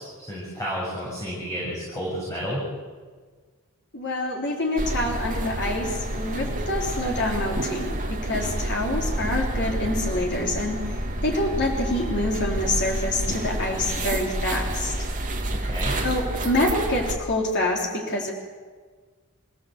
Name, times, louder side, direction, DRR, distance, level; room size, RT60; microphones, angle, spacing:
voice 1, 0.0-2.6 15.6-16.0, equal, 15° left, -6 dB, 7.3 m, -31 dB
voice 2, 3.9-7.9 8.2-14.9 16.0-18.3, left 1 dB, 50° left, 0 dB, 3.5 m, -26 dB
sound 1, 4.8-17.2, right 1 dB, 35° right, 2.4 m, -29 dB
27.0 x 16.5 x 8.2 m, 1.5 s
head